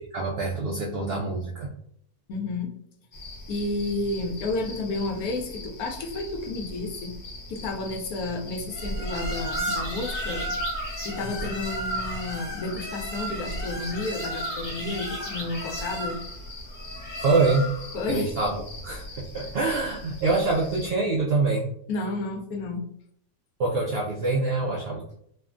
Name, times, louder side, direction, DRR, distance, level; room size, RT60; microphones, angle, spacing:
voice 1, 0.1-1.7 17.2-17.7 18.1-21.7 23.6-25.1, right 3 dB, 75° right, -2 dB, 0.5 m, -25 dB
voice 2, 2.3-2.7 3.5-7.1 7.5-10.6 11.0-16.2 17.9-18.3 21.9-22.8, left 2 dB, 85° left, 2 dB, 1.1 m, -31 dB
sound 1, 3.1-20.9, left 2 dB, 65° left, 1.1 m, -42 dB
Plaka Forest, 8.7-17.9, equal, 35° left, 0.9 m, -33 dB
3.2 x 2.2 x 2.4 m, 0.69 s
omnidirectional pair, 1.5 m